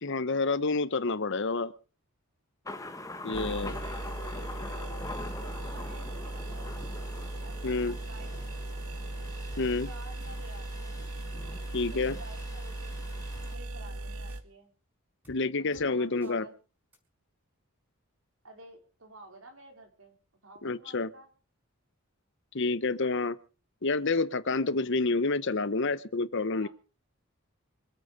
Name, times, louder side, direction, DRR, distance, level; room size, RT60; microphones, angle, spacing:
voice 1, 0.0-1.7 3.2-3.7 7.6-8.0 9.6-9.9 11.7-12.2 15.3-16.5 20.6-21.1 22.5-23.4 23.8-26.7, left 3 dB, 55° left, 0.9 m, -28 dB
Thunder, 2.7-13.6, left 2 dB, 15° left, 1.4 m, -43 dB
sound 1, 3.3-14.4, right 2 dB, 90° right, 1.6 m, -38 dB
voice 2, 3.4-4.0 4.7-6.7 7.4-9.0 9.8-11.1 11.8-13.0 13.3-14.7 15.6-16.5 18.4-20.2 20.4-21.3 26.5-26.7, right 2 dB, 65° right, 4.7 m, -52 dB
sound 2, 9.5-9.6 10.2-10.6 11.4-11.9 12.4-12.5 13.1-13.5 14.3-14.4 15.2-15.4 15.7-15.9 16.2-16.3 16.9-17.0, equal, 5° right, 4.9 m, -55 dB
26.0 x 8.8 x 5.2 m
head